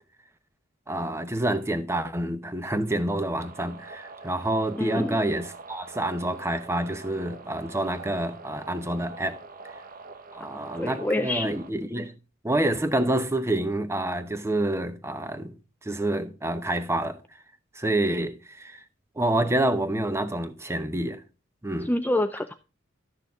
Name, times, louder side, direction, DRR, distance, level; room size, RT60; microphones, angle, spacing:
voice 1, 0.9-9.4 10.3-12.1 12.4-15.6 15.8-17.2 17.7-18.8 19.2-21.2 21.6-21.9, right 1 dB, 15° right, 0.9 m, -28 dB
sound 1, 3.4-11.7, right 3 dB, 45° right, 0.9 m, -45 dB
voice 2, 4.8-5.2 10.8-11.5 21.8-22.5, left 1 dB, 10° left, 0.4 m, -26 dB
12.0 x 6.6 x 3.6 m
head